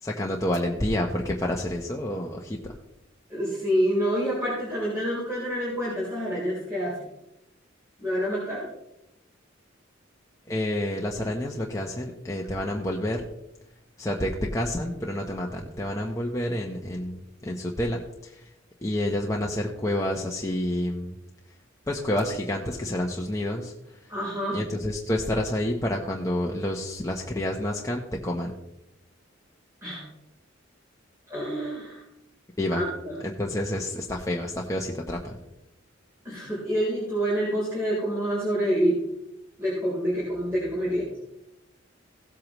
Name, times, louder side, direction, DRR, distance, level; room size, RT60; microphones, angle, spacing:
voice 1, 0.0-2.8 10.5-13.2 14.0-18.5 18.8-21.2 21.9-24.1 24.5-28.6 32.6-32.8 33.2-35.4, left 1 dB, 15° left, -1 dB, 1.0 m, -29 dB
voice 2, 3.3-7.0 8.0-8.7 24.1-24.6 29.8-30.0 31.3-32.0 32.7-33.1 36.2-39.0 39.6-41.1, equal, 15° right, -7 dB, 3.7 m, -27 dB
16.5 x 8.5 x 3.1 m, 0.88 s
head